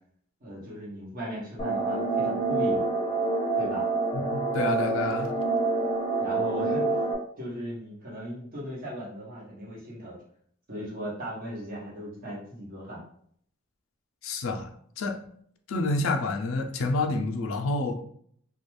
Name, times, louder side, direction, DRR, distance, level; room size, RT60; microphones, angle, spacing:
voice 1, 0.4-2.9 3.6-3.9 6.2-7.0 7.4-10.2 10.7-13.0, equal, 45° right, -5 dB, 1.0 m, -37 dB
sound 1, 1.6-7.1, right 3 dB, 25° left, 0.6 m, -27 dB
voice 2, 4.1-5.3 14.2-14.7 15.0-15.2 15.7-18.0, left 2 dB, 75° left, 4 dB, 0.4 m, -28 dB
2.3 x 2.3 x 3.1 m, 0.63 s
head